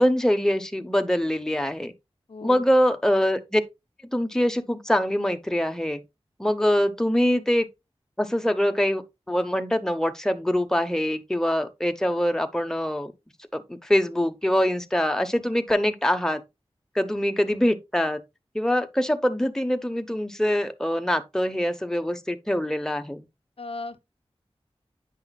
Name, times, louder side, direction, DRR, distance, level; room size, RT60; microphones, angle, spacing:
voice 1, 0.0-1.9 2.4-3.6 4.1-6.0 6.4-7.7 8.2-13.1 13.5-16.4 16.9-18.2 18.5-23.3, equal, 5° left, 0.8 m, -24 dB
voice 2, 2.3-2.7 23.6-24.0, left 3 dB, 60° left, 0.6 m, -36 dB
8.9 x 5.7 x 2.3 m
wide cardioid pair, 55°, 11 cm